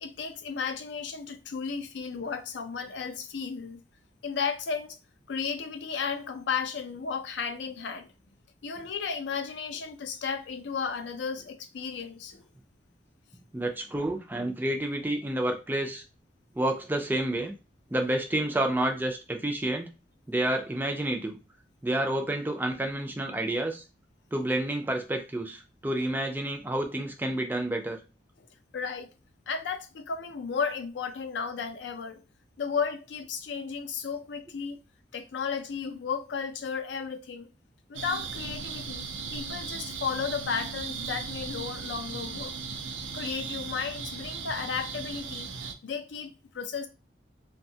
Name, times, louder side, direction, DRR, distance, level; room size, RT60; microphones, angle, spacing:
voice 1, 0.0-3.8 4.2-5.0 5.3-8.1 8.6-12.4 28.7-29.1 29.5-32.2 32.6-34.8 35.1-37.5 37.9-39.1 39.3-42.5 43.1-46.9, left 6 dB, 75° left, 0.4 m, -34 dB
voice 2, 13.5-16.0 16.6-17.5 17.9-19.9 20.3-21.4 21.8-23.8 24.3-28.0, right 1 dB, 10° right, 0.3 m, -29 dB
sound 1, 37.9-45.7, right 5 dB, 85° right, 0.5 m, -37 dB
2.7 x 2.2 x 2.7 m
head